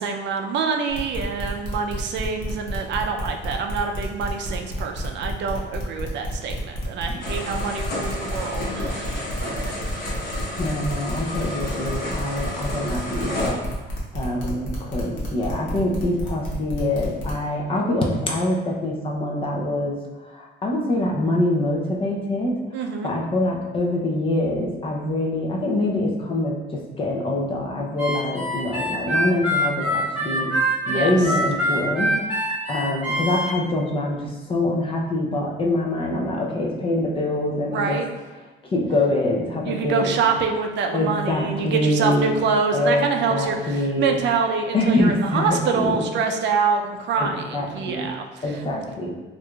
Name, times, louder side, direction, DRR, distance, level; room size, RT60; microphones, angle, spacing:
voice 1, 0.0-10.1 22.7-23.1 30.9-31.1 37.7-38.0 39.7-48.8, right 5 dB, 65° right, 3 dB, 0.4 m, -26 dB
sound 1, 0.9-17.3, equal, 75° left, 1.0 m, -32 dB
sound 2, 7.2-13.5, left 1 dB, 50° left, 1.0 m, -32 dB
voice 2, 10.6-13.6 14.1-20.0 20.3-22.6 23.0-30.5 30.9-38.0 38.6-40.2 40.9-42.4 42.7-44.2 44.7-46.1 47.2-48.1 48.4-49.1, left 1 dB, 30° left, -1 dB, 0.5 m, -24 dB
Harmonica, 28.0-33.5, equal, 5° right, 0.9 m, -24 dB
4.5 x 2.5 x 2.3 m, 1.2 s
cardioid pair, 160°, 20 cm